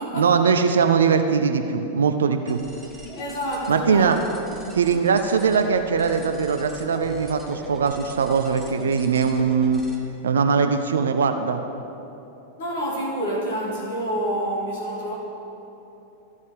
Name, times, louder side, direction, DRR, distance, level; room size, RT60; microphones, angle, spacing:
voice 1, 0.1-2.6 3.7-4.2 4.7-9.8 10.2-11.6, right 6 dB, 65° right, 7 dB, 0.5 m, -21 dB
sound 1, 2.5-10.0, equal, 5° left, 1.5 m, -42 dB
voice 2, 3.2-4.2 12.6-15.1, equal, 60° left, -4 dB, 2.1 m, -27 dB
14.5 x 5.4 x 5.0 m, 3.0 s
figure-of-eight pair, 90°, 0 cm